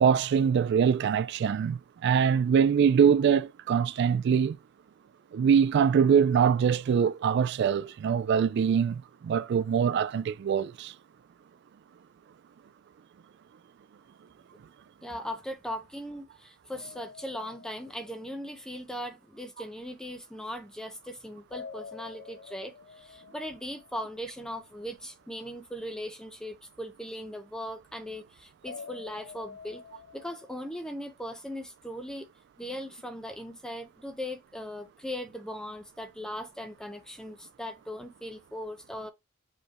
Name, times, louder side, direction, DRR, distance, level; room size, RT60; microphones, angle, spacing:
voice 1, 0.0-4.6 5.3-10.9, right 7 dB, 60° right, 0.3 m, -23 dB
voice 2, 15.0-29.8 30.1-32.3 32.6-39.1, equal, 5° left, 0.6 m, -39 dB
sound 1, 16.7-18.8 21.5-24.4 28.6-30.9, left 6 dB, 60° left, 0.5 m, -47 dB
5.0 x 2.2 x 4.0 m
head